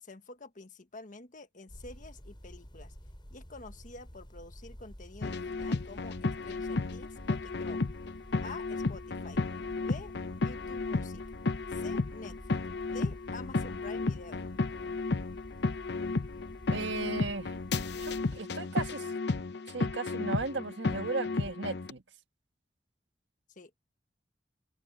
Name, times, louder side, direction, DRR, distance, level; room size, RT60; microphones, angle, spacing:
voice 1, 0.0-3.0 3.3-7.8 8.4-9.4 9.8-10.1 10.4-11.2 11.7-14.5 23.5-23.8, left 3 dB, 45° left, 1.5 m, -48 dB
sound 1, 1.7-18.4, equal, 25° left, 6.1 m, -50 dB
sound 2, 5.2-21.9, left 3 dB, 70° left, 0.8 m, -33 dB
voice 2, 16.7-17.5 18.0-19.1 19.7-22.0, right 3 dB, 90° right, 1.6 m, -36 dB
open air
head